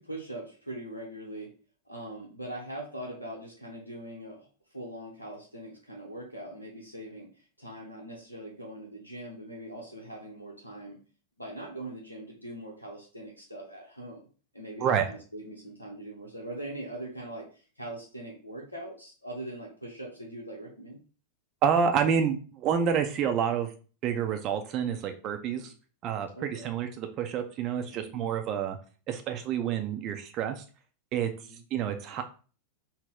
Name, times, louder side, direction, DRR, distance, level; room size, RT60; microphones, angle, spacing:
voice 1, 0.0-1.5 1.9-7.3 7.6-11.0 11.4-14.3 14.5-21.0 25.5-25.7 26.4-26.8 27.9-28.2 31.2-31.6, right 1 dB, 85° left, 0 dB, 0.7 m, -42 dB
voice 2, 21.6-23.7 24.0-25.7 26.0-28.8 29.1-30.6 31.1-31.3 31.7-32.2, right 7 dB, 35° right, 6 dB, 0.4 m, -28 dB
3.9 x 2.1 x 3.6 m, 0.38 s
figure-of-eight pair, 90°, 0 cm